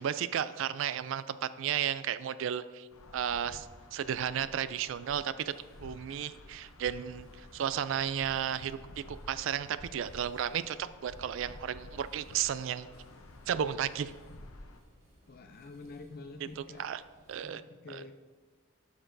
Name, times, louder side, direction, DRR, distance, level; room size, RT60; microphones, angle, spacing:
voice 1, 0.0-2.9 3.1-3.7 3.9-5.5 5.8-12.9 13.5-14.1 16.6-17.0 17.3-17.6 17.9-18.0, right 9 dB, 60° right, 15 dB, 0.3 m, -33 dB
sound 1, 2.9-14.8, left 2 dB, 80° left, 0.7 m, -52 dB
sound 2, 5.4-17.4, right 1 dB, 30° right, 2.1 m, -61 dB
voice 2, 15.3-16.9 17.4-18.1, left 3 dB, 45° left, 5 dB, 0.5 m, -47 dB
12.5 x 6.0 x 2.6 m, 1.4 s
head